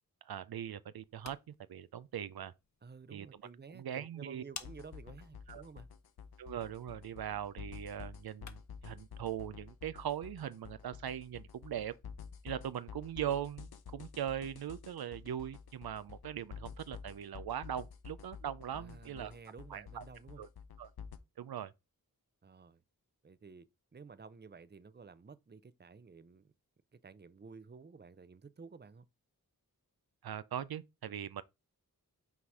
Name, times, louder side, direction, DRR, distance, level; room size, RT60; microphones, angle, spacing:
voice 1, 0.3-2.5 3.1-3.3 3.7-4.4 5.5-5.6 6.4-11.9 12.4-19.3 19.7-20.0 20.4-20.5 20.8-20.9 21.4-21.7 30.2-31.4, right 10 dB, 80° right, 0.5 m, -40 dB
sound 1, 0.9-8.9, left 5 dB, 50° left, 0.8 m, -56 dB
voice 2, 2.8-5.9 18.7-20.4 22.4-22.8 23.2-23.7 23.9-26.5 26.9-29.1, right 5 dB, 30° right, 0.6 m, -53 dB
sound 2, 4.6-21.2, left 7 dB, 85° left, 0.7 m, -50 dB
5.9 x 4.1 x 4.6 m
wide cardioid pair, 45°, 36 cm